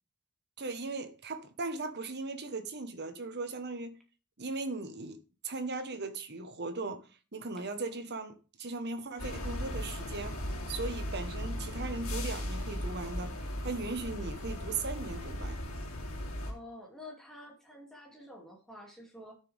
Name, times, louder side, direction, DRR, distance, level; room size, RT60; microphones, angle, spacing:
voice 1, 0.6-4.0 4.4-10.4 10.7-13.4 13.6-15.6, right 3 dB, 50° right, 1.3 m, -38 dB
sound 1, 9.2-16.5, left 1 dB, 65° left, 3.1 m, -37 dB
voice 2, 16.5-19.3, left 1 dB, ahead, 2.7 m, -49 dB
12.5 x 6.8 x 3.5 m
head